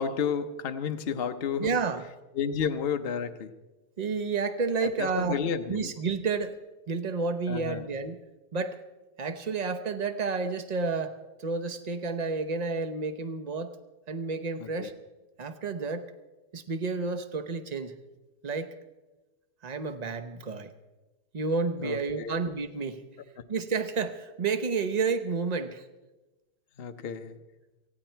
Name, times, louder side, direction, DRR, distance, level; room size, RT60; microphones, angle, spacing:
voice 1, 0.0-1.8 2.3-3.5 4.8-5.9 7.5-7.8 14.6-14.9 21.8-22.4 26.8-27.4, left 7 dB, 50° left, 8 dB, 0.7 m, -31 dB
voice 2, 1.6-2.0 4.0-5.4 5.7-6.6 6.9-8.2 8.5-8.8 9.2-11.1 11.4-13.7 14.1-14.9 15.4-16.0 16.5-17.9 18.4-18.7 19.6-20.7 21.3-23.0 23.5-25.8, right 4 dB, 50° right, 9 dB, 0.5 m, -30 dB
18.5 x 15.0 x 4.5 m, 1.1 s
omnidirectional pair, 2.0 m